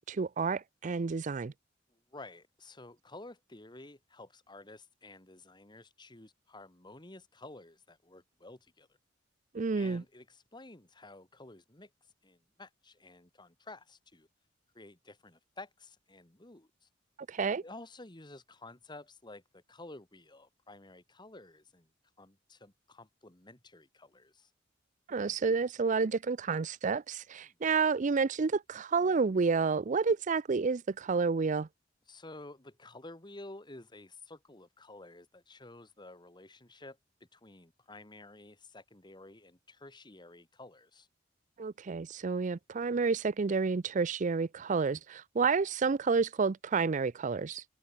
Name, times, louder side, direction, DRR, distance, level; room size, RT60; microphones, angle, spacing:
voice 1, 0.0-1.5 9.5-10.0 17.3-17.6 25.1-31.7 41.6-47.6, right 4 dB, 40° right, 0.5 m, -30 dB
voice 2, 1.9-8.9 9.8-11.9 12.2-14.3 14.7-16.9 17.6-21.9 22.2-24.5 27.4-27.6 32.1-37.0 37.3-41.1, left 2 dB, 25° left, 2.1 m, -51 dB
head